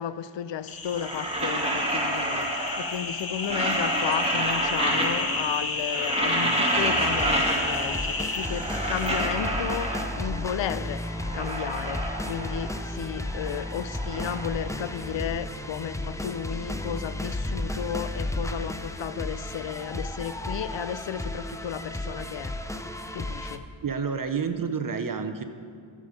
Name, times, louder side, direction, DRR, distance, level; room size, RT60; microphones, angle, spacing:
voice 1, 0.0-22.8 23.1-23.6, left 9 dB, 60° left, 0.6 m, -33 dB
sound 1, 0.7-9.2, left 3 dB, 45° left, 1.3 m, -32 dB
sound 2, 0.9-3.0 3.3-5.5 5.8-8.0 8.3-10.4 10.9-12.9 13.1-15.3, right 1 dB, 10° right, 1.8 m, -29 dB
sound 3, 6.8-23.6, left 1 dB, 5° left, 0.6 m, -34 dB
voice 2, 23.8-25.4, right 6 dB, 40° right, 0.8 m, -29 dB
12.5 x 7.6 x 5.2 m
cardioid pair, 65°, 49 cm